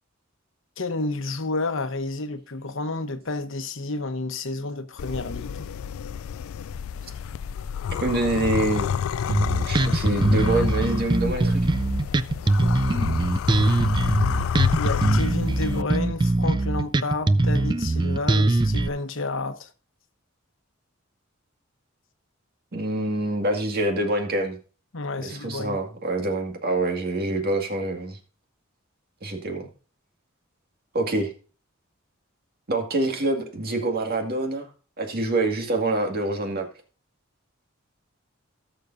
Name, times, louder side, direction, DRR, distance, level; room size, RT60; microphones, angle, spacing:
voice 1, 0.8-5.7 14.7-19.7 24.9-25.8, left 3 dB, 70° left, 1.0 m, -30 dB
sound 1, 5.0-15.8, left 7 dB, 90° left, 0.3 m, -29 dB
voice 2, 8.0-8.9 9.6-11.6 22.7-24.6 25.2-28.2 29.2-29.7 30.9-31.3 32.7-34.7 35.0-36.7, right 2 dB, 50° right, 2.0 m, -26 dB
Bass guitar, 9.3-18.9, right 2 dB, 20° right, 0.4 m, -22 dB
18.0 x 6.9 x 2.6 m
head